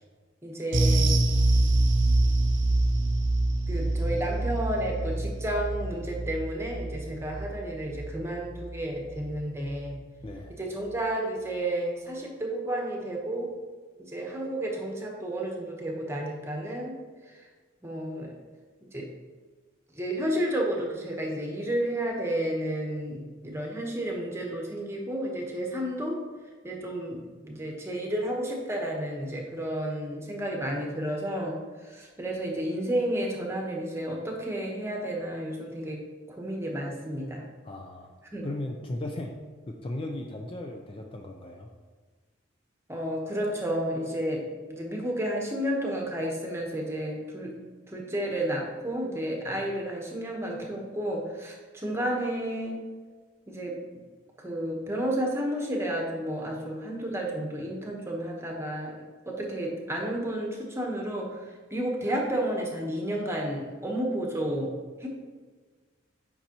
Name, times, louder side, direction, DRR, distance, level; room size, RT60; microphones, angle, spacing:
voice 1, 0.4-1.2 3.7-10.0 10.6-13.5 14.0-17.0 17.2-17.4 17.8-18.3 18.9-19.1 19.9-26.2 26.6-36.0 36.4-37.4 38.3-38.5 42.9-44.4 44.7-47.5 47.9-52.8 53.5-54.0 54.4-58.9 59.3-65.1, right 1 dB, 15° right, 0 dB, 1.0 m, -31 dB
sound 1, 0.7-9.4 9.7-9.9 10.3-10.4, right 2 dB, 75° right, 0.8 m, -26 dB
voice 2, 10.2-10.5 37.6-38.1 38.4-39.3 39.7-41.7, left 1 dB, 25° left, 2 dB, 0.4 m, -36 dB
8.7 x 5.4 x 2.9 m, 1.5 s
head